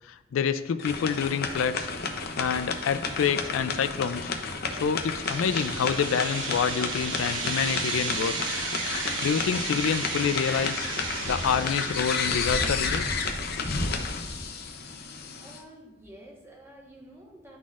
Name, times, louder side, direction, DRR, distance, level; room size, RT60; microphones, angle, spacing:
voice 1, 0.1-1.9 2.4-4.3 4.7-8.4 9.2-10.9 11.3-13.1, left 6 dB, 90° left, 13 dB, 0.3 m, -27 dB
sound 1, 0.8-15.6, left 4 dB, 55° left, 0.6 m, -31 dB
sound 2, 5.0-12.9, right 4 dB, 85° right, 1.2 m, -34 dB
voice 2, 15.4-17.6, right 1 dB, 15° right, -2 dB, 1.2 m, -49 dB
11.0 x 4.0 x 2.4 m, 0.97 s
head